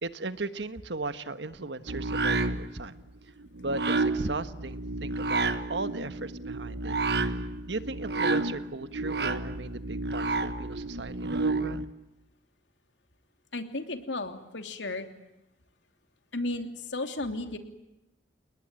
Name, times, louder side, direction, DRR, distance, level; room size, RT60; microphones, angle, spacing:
voice 1, 0.0-2.9 3.6-6.9 7.7-11.9, right 2 dB, 80° right, 12 dB, 1.5 m, -36 dB
sound 1, 1.9-11.9, right 3 dB, 65° right, 1.5 m, -30 dB
voice 2, 13.5-15.1 16.3-17.6, left 2 dB, 90° left, 7 dB, 3.0 m, -34 dB
30.0 x 20.0 x 8.9 m, 0.96 s
head